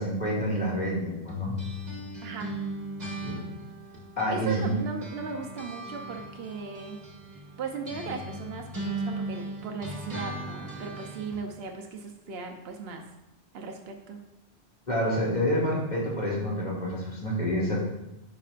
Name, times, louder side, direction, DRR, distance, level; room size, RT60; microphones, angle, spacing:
voice 1, 0.0-1.5 3.2-3.4 4.2-4.7 14.9-17.8, equal, 45° left, -6 dB, 2.6 m, -28 dB
sound 1, 1.3-4.7 5.0-11.4, right 1 dB, 40° right, 1.5 m, -37 dB
voice 2, 2.2-2.5 4.3-7.0 7.6-13.1 13.5-14.2, right 4 dB, 70° right, 3 dB, 1.0 m, -37 dB
9.9 x 6.1 x 2.5 m, 0.94 s
omnidirectional pair, 1.1 m